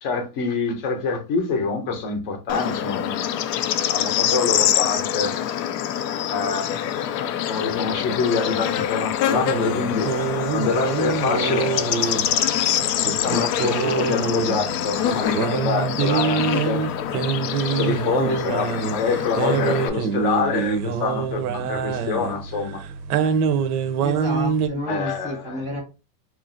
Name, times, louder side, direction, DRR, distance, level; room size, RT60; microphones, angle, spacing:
voice 1, 0.0-3.4 3.9-5.4 6.3-6.8 7.4-10.1 10.5-11.7 12.3-12.8 13.1-16.9 17.8-22.8 24.8-25.6, left 5 dB, 35° left, 0.6 m, -26 dB
Bird / Insect, 2.5-19.9, left 10 dB, 85° left, 0.6 m, -25 dB
sound 1, 9.3-24.7, right 6 dB, 70° right, 0.6 m, -25 dB
voice 2, 24.0-25.8, equal, 15° right, 0.6 m, -30 dB
2.9 x 2.5 x 2.5 m
supercardioid pair, 165°, 48 cm